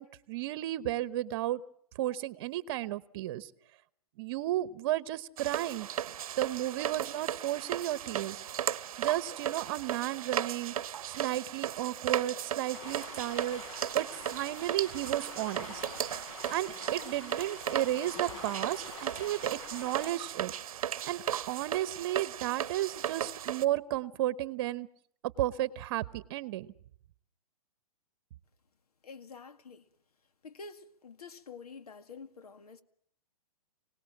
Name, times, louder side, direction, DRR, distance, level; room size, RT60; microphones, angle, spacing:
voice 1, 0.0-1.6 2.0-3.5 4.2-5.9 6.4-8.4 9.0-10.7 11.1-13.6 13.9-15.8 16.5-20.5 21.0-24.9 25.4-26.7, right 14 dB, 40° right, 1.0 m, -33 dB
sound 1, 5.4-23.6, right 10 dB, 65° right, 0.9 m, -36 dB
sound 2, 12.7-20.1, left 3 dB, 55° left, 5.0 m, -46 dB
voice 2, 29.0-29.8 30.4-32.8, left 4 dB, 85° left, 2.0 m, -48 dB
26.0 x 18.5 x 7.4 m
hypercardioid pair, 150°, 19 cm